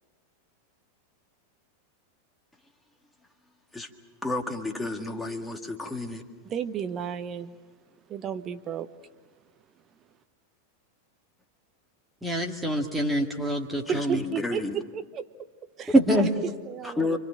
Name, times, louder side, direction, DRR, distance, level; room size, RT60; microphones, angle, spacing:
voice 1, 4.2-6.2 13.9-14.7 16.8-17.2, left 3 dB, 5° left, 4 dB, 1.9 m, -31 dB
voice 2, 6.5-7.5 8.1-8.9 13.9-15.3 15.8-17.2, right 8 dB, 30° right, 10 dB, 1.0 m, -33 dB
voice 3, 12.2-14.2 15.9-16.3, right 1 dB, 10° right, 0 dB, 2.1 m, -24 dB
29.0 x 25.0 x 6.4 m, 1.3 s
figure-of-eight pair, 90°, 0 cm